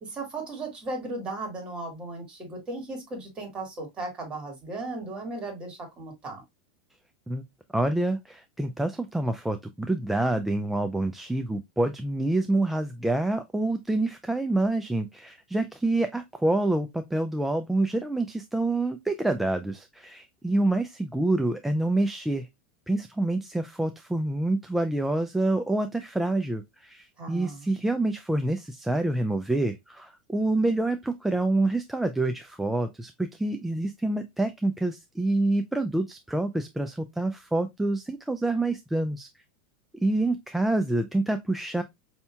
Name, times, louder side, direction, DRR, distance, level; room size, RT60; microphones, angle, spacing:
voice 1, 0.0-6.4 27.2-27.7, right 2 dB, 20° right, 1.9 m, -36 dB
voice 2, 7.7-22.5 22.9-39.3 39.9-41.8, right 2 dB, 5° right, 0.3 m, -27 dB
5.3 x 2.8 x 2.3 m
supercardioid pair, 135°, 5 cm